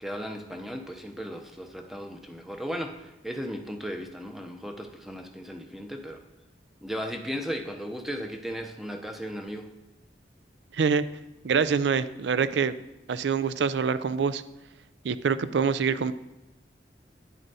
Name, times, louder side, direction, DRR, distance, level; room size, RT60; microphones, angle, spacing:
voice 1, 0.0-6.2 6.8-9.7, equal, ahead, 4 dB, 0.5 m, -36 dB
voice 2, 10.7-11.0 11.4-12.7 13.1-14.4 15.0-16.1, right 6 dB, 80° right, 14 dB, 0.4 m, -25 dB
11.0 x 9.0 x 2.7 m, 0.95 s
head